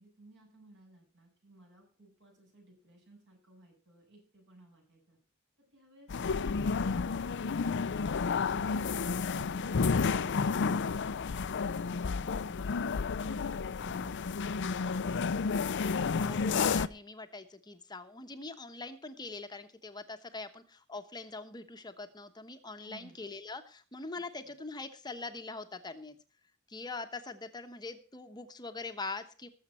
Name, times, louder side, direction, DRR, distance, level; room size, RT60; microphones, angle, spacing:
voice 1, 0.0-5.2 5.7-8.9 9.2-15.2 22.8-23.3 24.2-24.5, right 2 dB, 60° right, 0 dB, 8.0 m, -59 dB
sound 1, 6.1-16.9, left 5 dB, 55° left, 0.5 m, -31 dB
voice 2, 16.2-26.1 26.7-29.5, left 3 dB, 20° left, 7 dB, 1.0 m, -43 dB
19.5 x 7.4 x 4.3 m, 0.38 s
head